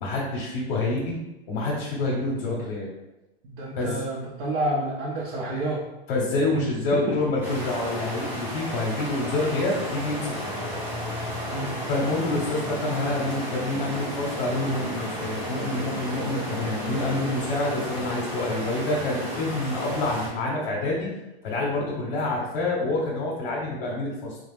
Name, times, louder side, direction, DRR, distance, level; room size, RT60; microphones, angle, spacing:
voice 1, 0.0-1.2 1.5-2.9 3.8-4.0 6.1-10.6 11.9-21.1 21.4-24.4, left 2 dB, 65° left, -2 dB, 0.8 m, -27 dB
voice 2, 3.5-5.8 6.5-6.6 7.1-7.2 11.5-11.8, right 1 dB, 55° right, -5 dB, 0.7 m, -29 dB
sound 1, 7.4-20.3, equal, 5° right, 0.6 m, -33 dB
2.4 x 2.1 x 3.2 m, 0.98 s
hypercardioid pair, 120°, 30 cm